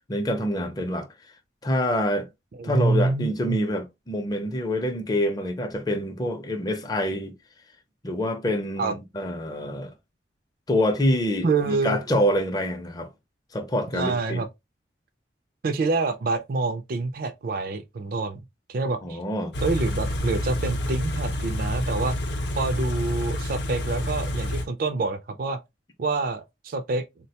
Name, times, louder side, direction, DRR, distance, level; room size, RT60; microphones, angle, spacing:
voice 1, 0.1-1.1 1.6-2.3 2.6-7.3 8.0-9.9 10.7-13.1 13.5-14.4 19.0-19.5, equal, 20° left, 0.5 m, -26 dB
voice 2, 2.6-3.6 8.8-9.0 11.4-12.0 13.9-14.5 15.6-18.4 18.7-19.2 19.6-22.2 22.6-25.6 26.0-27.0, right 3 dB, 50° right, 0.4 m, -26 dB
Car / Idling, 19.5-24.7, left 1 dB, 65° left, 0.6 m, -28 dB
3.7 x 2.2 x 2.7 m
head